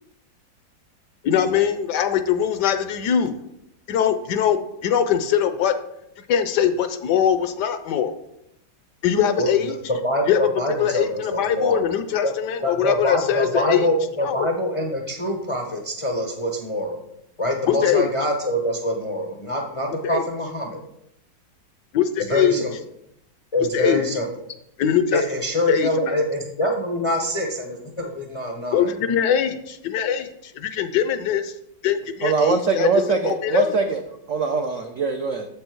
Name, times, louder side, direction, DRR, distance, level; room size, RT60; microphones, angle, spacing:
voice 1, 1.2-3.4 3.9-4.6 4.8-5.7 6.3-8.1 9.0-9.8 10.3-10.4 10.8-13.9 14.2-14.5 17.7-18.1 20.0-20.2 21.9-22.6 23.7-24.0 24.8-25.2 25.7-26.2 28.7-31.5 31.8-32.9 33.2-33.7, left 9 dB, 75° left, 10 dB, 1.1 m, -22 dB
voice 2, 10.0-11.8 12.2-12.3 12.6-17.0 17.4-20.7 22.3-22.7 23.5-24.2 25.1-28.9, left 1 dB, 50° left, 1 dB, 0.3 m, -25 dB
voice 3, 32.2-34.0 34.3-35.5, right 5 dB, 85° right, 5 dB, 0.6 m, -22 dB
7.5 x 5.4 x 4.5 m, 0.79 s
omnidirectional pair, 2.0 m